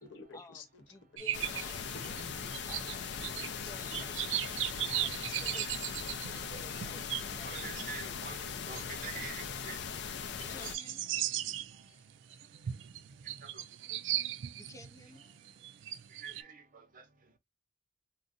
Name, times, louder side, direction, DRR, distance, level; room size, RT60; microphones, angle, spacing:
voice 1, 0.0-1.6 1.9-2.7 3.1-4.3 11.4-11.5, left 3 dB, 85° left, 1.0 m, -53 dB
voice 2, 0.9-1.7 2.7-3.1 3.7-5.6 6.3-7.6 10.4-11.1 11.9-12.1 14.6-15.2, left 2 dB, 20° left, 0.6 m, -53 dB
sound 1, 1.2-9.5 10.0-10.1 10.4-16.4, right 12 dB, 85° right, 0.4 m, -38 dB
sound 2, 1.3-10.8, left 6 dB, 65° left, 0.5 m, -40 dB
voice 3, 7.4-9.8 10.8-10.9 13.4-13.6 16.2-17.0, right 6 dB, 50° right, 0.8 m, -46 dB
3.8 x 2.1 x 2.6 m
head